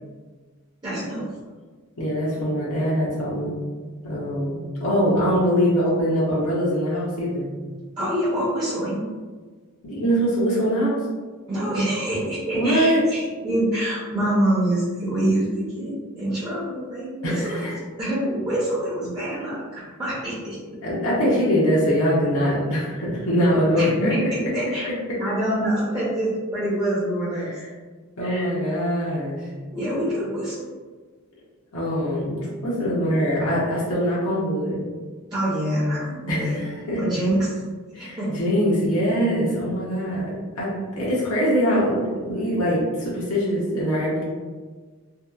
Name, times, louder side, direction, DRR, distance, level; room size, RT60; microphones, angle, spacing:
voice 1, 0.8-1.2 8.0-9.0 11.5-20.8 23.7-24.9 25.2-27.5 28.2-28.6 29.7-30.7 35.3-36.6 37.0-37.6 37.9-38.3, right 1 dB, 20° right, -9 dB, 0.5 m, -26 dB
voice 2, 2.0-3.6 4.0-7.5 9.8-11.0 12.5-13.0 17.2-17.7 20.8-24.1 27.4-27.5 28.2-29.5 31.7-34.8 36.3-37.0 37.9-44.2, equal, 75° left, -6 dB, 0.6 m, -23 dB
2.7 x 2.2 x 2.3 m, 1.4 s
head